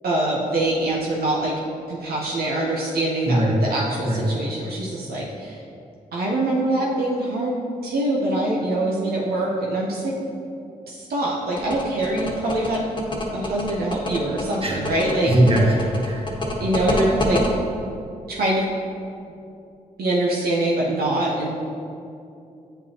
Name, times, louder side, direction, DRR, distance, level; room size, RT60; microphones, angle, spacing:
voice 1, 0.0-1.5 1.9-5.6 6.1-7.6 7.8-10.1 10.9-12.9 13.3-15.3 16.6-17.4 18.3-18.7 20.0-21.5, right 1 dB, 75° right, -4 dB, 0.9 m, -24 dB
voice 2, 3.3-3.6 4.0-4.3 14.6-14.8 15.2-16.3, right 1 dB, 35° right, -2 dB, 1.5 m, -20 dB
sound 1, 11.6-17.5, left 1 dB, 30° left, 1.2 m, -27 dB
8.7 x 5.1 x 2.9 m, 2.6 s
supercardioid pair, 50°, 16 cm